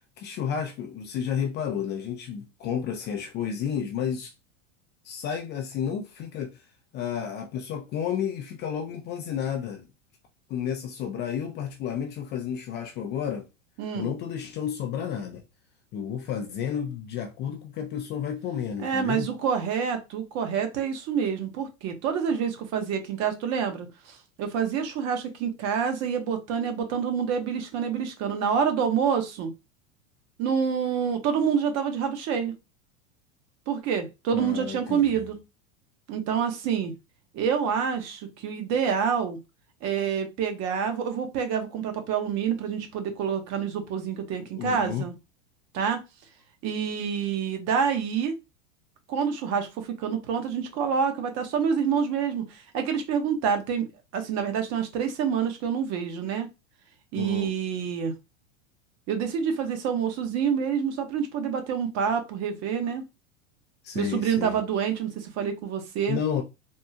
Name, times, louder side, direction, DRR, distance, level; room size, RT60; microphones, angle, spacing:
voice 1, 0.2-4.3 5.0-6.6 6.9-9.9 10.5-13.5 13.9-15.4 15.9-19.3 34.3-35.3 44.6-45.1 57.1-57.5 63.8-64.6 66.1-66.4, left 8 dB, 30° left, 0.4 m, -31 dB
voice 2, 13.8-14.1 18.8-29.5 30.4-32.5 33.7-35.4 36.1-36.9 37.3-39.4 39.8-45.1 45.7-46.0 46.6-48.3 49.1-53.9 54.1-56.5 57.1-58.1 59.1-63.0 63.9-66.2, right 7 dB, 45° right, 0.9 m, -27 dB
3.6 x 2.2 x 2.7 m
hypercardioid pair, 115°, 38 cm